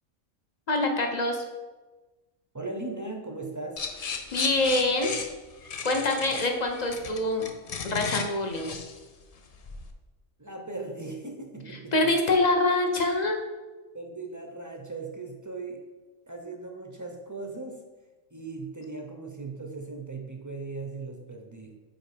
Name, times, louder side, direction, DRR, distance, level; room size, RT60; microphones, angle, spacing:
voice 1, 0.7-1.4 4.3-5.1 5.8-7.5 7.8-8.7 11.9-13.4, left 2 dB, 40° left, 3 dB, 0.7 m, -25 dB
voice 2, 2.5-3.8 10.4-12.1 13.9-15.8 16.3-17.8 18.3-21.8, right 3 dB, 25° right, 2 dB, 0.4 m, -38 dB
sound 1, 3.8-9.9, left 5 dB, 70° left, 0.3 m, -35 dB
5.1 x 4.3 x 4.9 m, 1.2 s
omnidirectional pair, 1.3 m